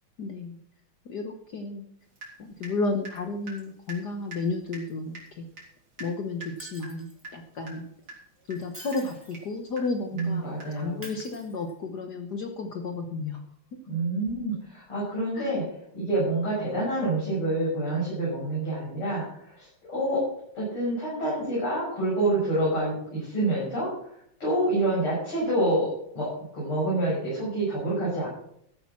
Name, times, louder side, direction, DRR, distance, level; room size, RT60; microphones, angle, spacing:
voice 1, 0.2-0.6 1.1-1.9 2.4-5.5 6.0-7.9 8.5-13.4 15.4-15.5, left 3 dB, 55° left, 5 dB, 1.6 m, -32 dB
Water tap faucet / Drip, 2.2-2.8 3.0-11.4, right 2 dB, 45° right, 4.0 m, -46 dB
Shatter, 6.6-7.3 8.5-9.5 11.0-12.0 14.2-14.4, right 1 dB, 5° right, 2.0 m, -47 dB
voice 2, 10.1-11.1 13.9-15.7 15.9-20.2 20.5-24.2 24.4-28.3, right 1 dB, 80° left, -8 dB, 7.5 m, -27 dB
14.0 x 8.6 x 6.1 m, 0.70 s
omnidirectional pair, 2.4 m